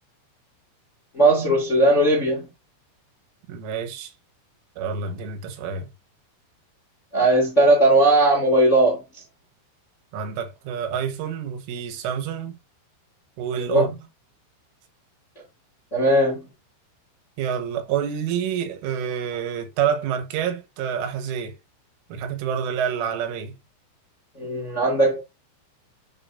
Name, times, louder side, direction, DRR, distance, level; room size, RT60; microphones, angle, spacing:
voice 1, 1.1-2.5 7.1-9.0 13.5-14.0 15.9-16.5 24.3-25.2, right 1 dB, 35° left, 1.1 m, -18 dB
voice 2, 3.5-4.1 4.8-5.9 10.1-12.6 13.4-13.9 17.4-21.6 22.1-23.6, right 8 dB, 85° right, 3.8 m, -28 dB
9.8 x 5.0 x 2.7 m
omnidirectional pair, 5.6 m